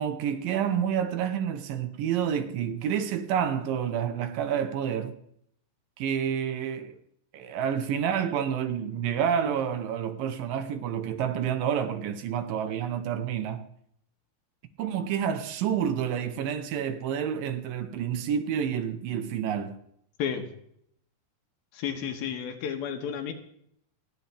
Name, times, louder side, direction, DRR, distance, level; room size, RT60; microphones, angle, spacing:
voice 1, 0.0-5.2 6.0-7.0 7.3-13.7 14.8-19.8, right 8 dB, 75° right, 2.5 m, -29 dB
voice 2, 21.7-23.3, left 8 dB, 90° left, 3.1 m, -32 dB
28.0 x 9.5 x 3.4 m
omnidirectional pair, 4.2 m